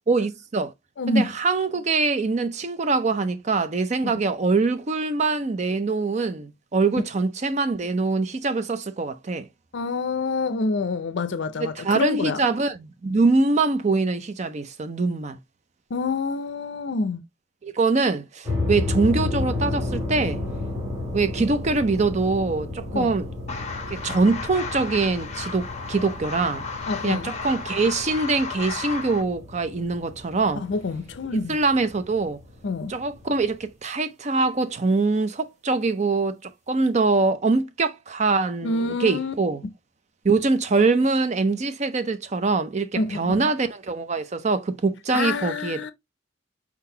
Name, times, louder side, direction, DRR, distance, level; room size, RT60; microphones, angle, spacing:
voice 1, 0.1-0.7 1.1-9.5 11.6-15.4 17.6-20.4 21.1-23.3 23.9-26.6 27.0-30.6 31.5-32.4 32.9-39.6 40.2-45.9, right 3 dB, 35° right, 0.5 m, -23 dB
voice 2, 1.0-1.3 4.0-4.1 9.7-12.4 15.9-17.2 22.9-23.2 26.9-27.3 30.6-31.6 32.6-33.0 38.6-39.3 42.9-43.5 45.1-45.9, left 3 dB, 65° left, 0.5 m, -27 dB
sound 1, 18.4-33.7, left 2 dB, 15° right, 2.6 m, -33 dB
sound 2, 23.5-29.2, left 4 dB, 35° left, 1.0 m, -34 dB
4.6 x 3.9 x 2.7 m
head